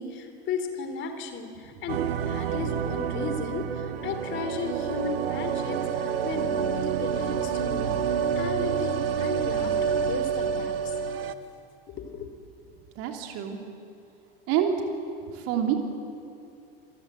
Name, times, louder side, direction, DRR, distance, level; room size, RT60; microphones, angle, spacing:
voice 1, 0.0-10.9 11.9-12.3, left 4 dB, 40° left, 7 dB, 3.5 m, -35 dB
sound 1, 1.9-11.3, right 7 dB, 70° right, 1.3 m, -28 dB
voice 2, 12.9-13.6 14.5-14.7 15.2-15.7, right 10 dB, 50° right, 3 dB, 3.1 m, -27 dB
27.0 x 21.5 x 7.8 m, 2.6 s
figure-of-eight pair, 80°, 31 cm